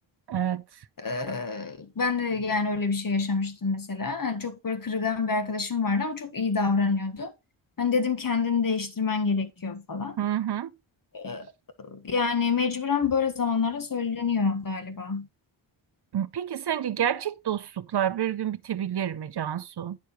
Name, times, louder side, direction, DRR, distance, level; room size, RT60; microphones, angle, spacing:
voice 1, 0.3-0.8 10.2-10.7 16.1-20.0, right 10 dB, 55° right, 0.7 m, -29 dB
voice 2, 1.0-7.3 7.8-10.2 11.1-11.5 11.8-15.3, left 5 dB, 45° left, 1.6 m, -27 dB
9.6 x 6.6 x 3.1 m
cardioid pair, 70°, 48 cm